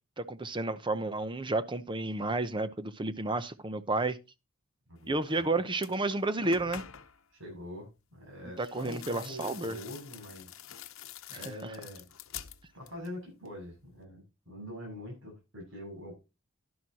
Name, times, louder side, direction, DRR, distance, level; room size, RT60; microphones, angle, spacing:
voice 1, 0.2-4.2 5.1-6.8 8.6-9.8, right 2 dB, 25° right, 0.8 m, -31 dB
voice 2, 4.9-5.6 7.3-10.5 11.3-12.1 12.7-16.2, left 1 dB, 70° right, 7.3 m, -44 dB
sound 1, 5.3-5.4 5.7-7.2 8.6-13.2 13.5-14.1, left 9 dB, 85° left, 0.9 m, -47 dB
11.0 x 11.0 x 2.9 m
head